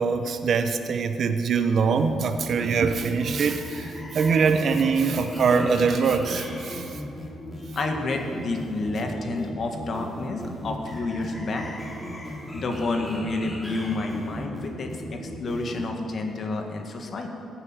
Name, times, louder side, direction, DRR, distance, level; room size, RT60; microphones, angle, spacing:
voice 1, 0.0-7.0, right 5 dB, 55° right, 8 dB, 0.8 m, -23 dB
sound 1, 1.7-15.8, left 1 dB, 15° left, 2.9 m, -37 dB
voice 2, 7.6-11.7 12.5-17.3, left 2 dB, 50° left, 3 dB, 1.8 m, -30 dB
15.0 x 8.1 x 9.0 m, 2.8 s
cardioid pair, 90°, 0 cm